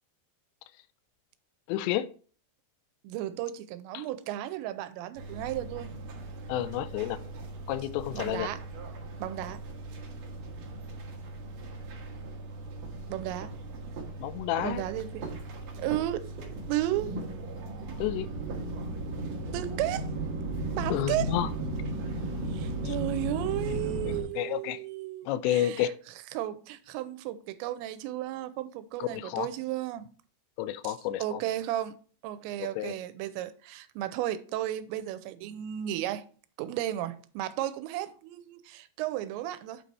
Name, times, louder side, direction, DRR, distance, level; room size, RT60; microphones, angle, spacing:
voice 1, 1.7-2.1 3.9-4.1 6.5-7.2 7.7-8.5 14.2-14.8 18.0-18.3 20.9-21.5 22.8-23.0 23.7-24.8 25.3-25.9 29.0-29.5 30.6-31.4 32.6-32.9, left 12 dB, 85° left, 2.8 m, -30 dB
voice 2, 3.0-5.9 8.1-8.6 9.2-9.6 13.1-13.5 14.6-15.3 15.8-16.4 16.7-17.2 19.5-20.1 20.7-21.4 22.5-25.9 26.3-30.1 30.8-30.9 31.2-32.0 32.2-36.2 36.6-39.8, right 13 dB, 85° right, 2.9 m, -34 dB
sound 1, 5.2-24.2, right 2 dB, 65° right, 1.8 m, -37 dB
8.6 x 4.1 x 4.5 m
omnidirectional pair, 5.1 m